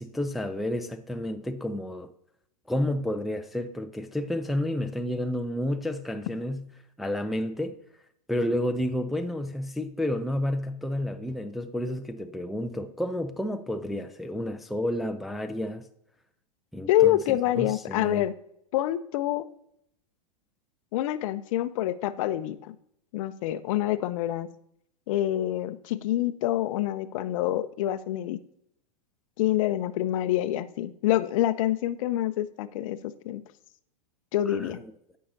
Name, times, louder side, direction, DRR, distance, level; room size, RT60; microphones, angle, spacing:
voice 1, 0.0-2.1 2.7-6.7 7.0-7.8 8.3-15.9 16.7-18.2 34.5-34.7, left 1 dB, ahead, 0.4 m, -30 dB
voice 2, 16.9-18.3 18.7-19.5 20.9-22.8 23.1-24.5 25.1-28.4 29.4-33.4 34.3-34.8, left 13 dB, 55° left, 0.6 m, -26 dB
15.5 x 5.6 x 2.7 m
hypercardioid pair, 105°, 21 cm